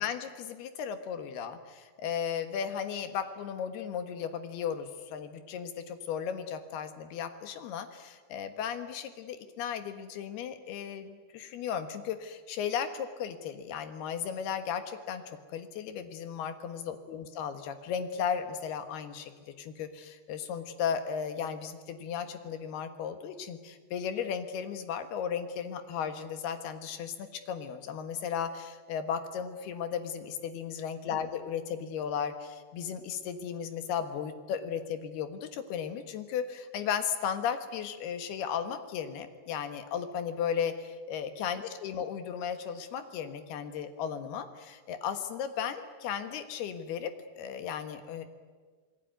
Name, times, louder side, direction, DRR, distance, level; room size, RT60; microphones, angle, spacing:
voice 1, 0.0-15.2 15.5-47.1 47.4-48.3, left 8 dB, 65° left, 8 dB, 3.0 m, -35 dB
27.0 x 21.0 x 9.4 m, 1.5 s
omnidirectional pair, 5.8 m